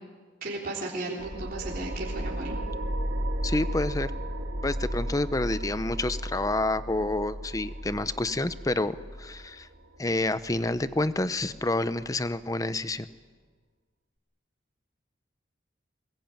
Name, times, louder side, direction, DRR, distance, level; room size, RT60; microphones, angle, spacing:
voice 1, 0.4-2.6, right 2 dB, 50° right, -3 dB, 3.7 m, -35 dB
sound 1, 1.2-12.2, right 1 dB, 80° right, 2.1 m, -34 dB
voice 2, 3.4-4.1 4.6-9.7 10.0-13.1, left 2 dB, 20° left, 13 dB, 0.8 m, -28 dB
23.0 x 21.5 x 9.1 m, 1.4 s
head